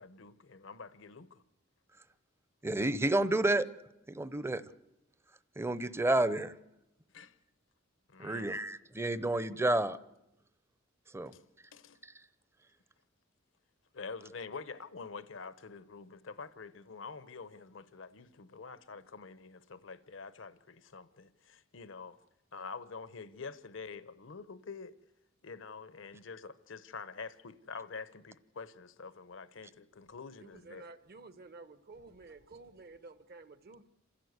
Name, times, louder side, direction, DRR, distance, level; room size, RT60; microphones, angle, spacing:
voice 1, 0.0-1.4 5.5-5.7 7.1-7.4 8.1-8.5 11.3-11.4 11.7-12.0 13.9-22.2 22.5-25.0 25.4-30.9, left 4 dB, 70° left, 0.9 m, -47 dB
voice 2, 2.6-3.7 4.1-4.6 5.6-6.5 8.2-10.0 11.1-11.3, right 2 dB, 15° right, 0.7 m, -30 dB
voice 3, 30.4-33.8, right 3 dB, 50° right, 1.1 m, -52 dB
27.5 x 15.5 x 8.1 m
head